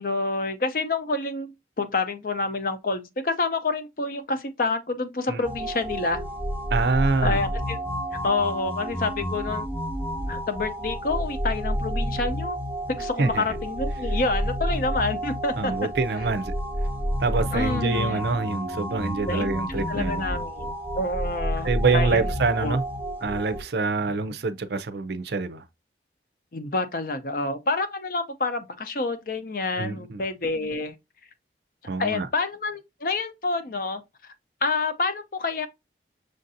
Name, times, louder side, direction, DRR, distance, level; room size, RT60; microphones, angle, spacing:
voice 1, 0.0-1.5 1.8-6.2 7.2-7.8 8.2-9.7 10.3-12.6 12.9-15.7 17.5-18.2 19.3-22.3 22.6-22.8 26.5-30.9 32.0-34.0 34.6-35.7, left 3 dB, 50° left, 0.6 m, -28 dB
sound 1, 5.4-23.6, equal, 10° right, 0.8 m, -30 dB
voice 2, 6.7-7.4 13.2-13.4 15.6-16.5 17.2-20.2 21.6-22.8 23.2-25.6 29.8-30.2 31.9-32.3, right 3 dB, 65° right, 0.5 m, -25 dB
6.4 x 2.5 x 2.6 m
head